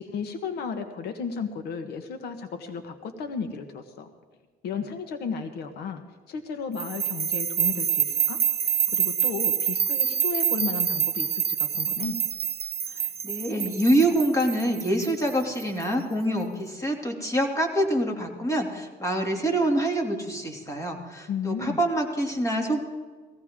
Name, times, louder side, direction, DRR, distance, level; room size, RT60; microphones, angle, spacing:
voice 1, 0.0-4.1 4.6-6.0 6.3-12.2 21.3-21.8, left 6 dB, 75° left, 8 dB, 1.3 m, -34 dB
sound 1, 6.8-15.8, right 8 dB, 35° right, 0.6 m, -27 dB
voice 2, 12.9-22.8, right 1 dB, 20° left, 2 dB, 2.6 m, -26 dB
18.5 x 16.0 x 3.7 m, 1.4 s
cardioid pair, 110°, 17 cm